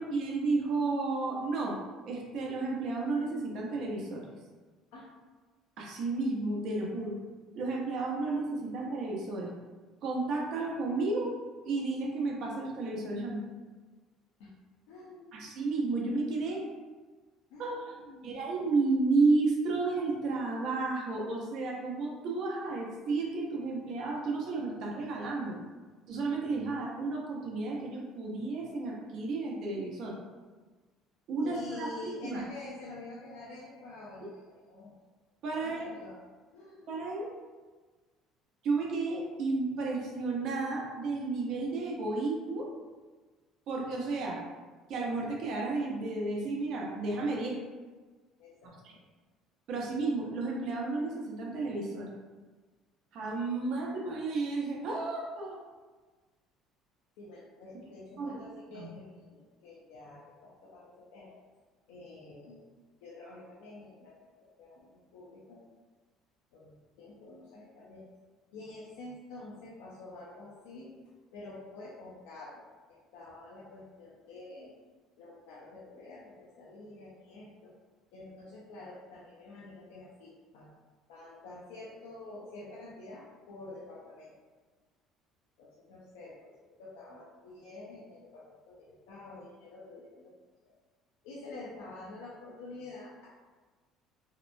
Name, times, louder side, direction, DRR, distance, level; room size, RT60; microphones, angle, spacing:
voice 1, 0.0-1.8 2.1-4.3 5.8-7.2 7.5-9.5 10.0-11.3 11.6-13.4 15.3-16.6 17.6-17.9 18.2-25.6 26.1-30.1 31.3-32.4 35.4-35.9 36.9-37.3 38.6-42.7 43.7-44.4 44.9-47.6 49.7-52.1 53.1-55.6 58.2-58.4 58.7-58.9, right 3 dB, 65° right, -1 dB, 0.6 m, -32 dB
voice 2, 14.9-15.5 17.5-18.4 31.4-34.9 35.5-36.3 36.5-36.9 48.4-49.0 57.2-61.4 61.9-62.6 63.0-65.6 66.5-68.1 68.5-70.9 71.3-74.7 75.2-77.7 78.1-80.7 81.1-84.3 85.6-86.5 86.8-90.3 90.7-90.8 91.2-93.3, left 2 dB, 90° left, -6 dB, 0.4 m, -48 dB
2.8 x 2.1 x 2.5 m, 1.3 s
supercardioid pair, 105°, 0 cm